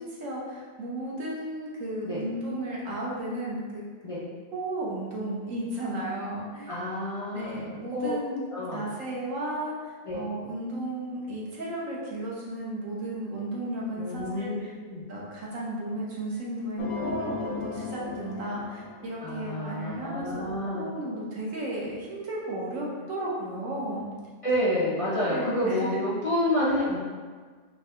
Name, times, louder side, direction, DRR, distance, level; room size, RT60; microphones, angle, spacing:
voice 1, 0.0-3.8 4.5-6.8 7.3-14.7 15.1-20.4 20.7-24.1 25.3-26.1, right 1 dB, 85° right, -5 dB, 1.3 m, -34 dB
voice 2, 6.7-8.1 8.5-8.9 10.1-10.2 14.0-14.6 14.8-15.0 19.2-20.9 24.4-27.0, left 1 dB, 40° left, -8 dB, 0.5 m, -29 dB
sound 1, 16.8-19.6, left 4 dB, 85° left, 1.0 m, -35 dB
4.0 x 2.7 x 3.3 m, 1.5 s
omnidirectional pair, 1.3 m